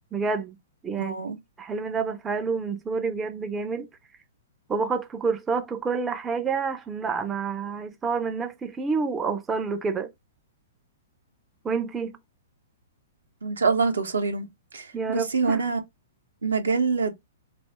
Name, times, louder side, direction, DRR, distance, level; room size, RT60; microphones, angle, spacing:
voice 1, 0.1-0.6 0.8-1.1 1.6-3.9 4.7-10.1 11.6-12.1 14.9-15.6, right 5 dB, 15° right, 0.3 m, -28 dB
voice 2, 1.0-1.4 13.4-14.5 14.7-15.8 16.4-17.1, right 4 dB, 85° right, 0.6 m, -25 dB
2.3 x 2.0 x 2.8 m
hypercardioid pair, 120°, 0 cm